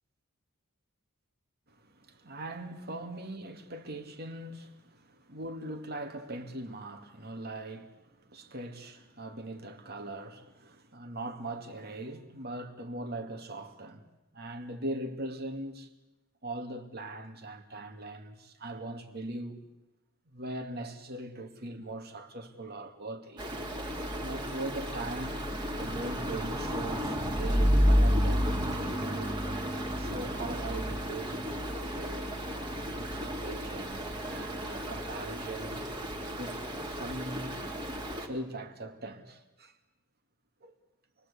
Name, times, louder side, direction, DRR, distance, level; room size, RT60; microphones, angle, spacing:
voice 1, 1.7-14.1 14.3-15.9 16.4-19.6 20.3-23.5 23.8-25.5 25.8-28.6 28.9-29.4 29.9-32.3 33.0-35.9 36.4-37.6 38.2-39.7 40.6-40.7, right 1 dB, 45° right, 2.5 m, -41 dB
Stream, 23.4-38.3, equal, 20° right, 2.8 m, -31 dB
28.0 x 21.5 x 8.5 m
head